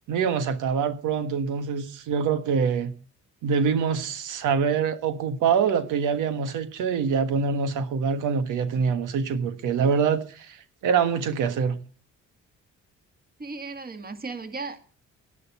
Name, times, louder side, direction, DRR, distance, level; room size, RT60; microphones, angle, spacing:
voice 1, 0.1-2.9 3.4-11.8, right 6 dB, 85° right, 1.5 m, -25 dB
voice 2, 13.4-14.8, right 4 dB, 30° right, 2.2 m, -35 dB
11.5 x 11.0 x 7.0 m
cardioid pair, 90°, 30 cm